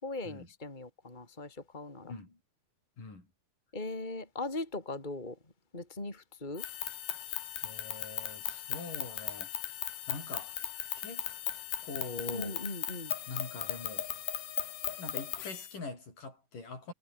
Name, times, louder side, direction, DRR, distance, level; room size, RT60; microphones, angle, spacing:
voice 1, 0.0-2.1 3.7-5.4 5.7-6.6 12.3-13.1, left 2 dB, 10° left, 4.8 m, -39 dB
voice 2, 2.1-2.4 3.0-3.3 7.6-9.5 10.1-10.6 11.0-11.3 11.8-12.6 13.3-14.1 15.0-16.9, left 3 dB, 65° left, 9.4 m, -43 dB
sound 1, 6.5-15.7, left 12 dB, 85° left, 3.6 m, -38 dB
omnidirectional pair, 4.1 m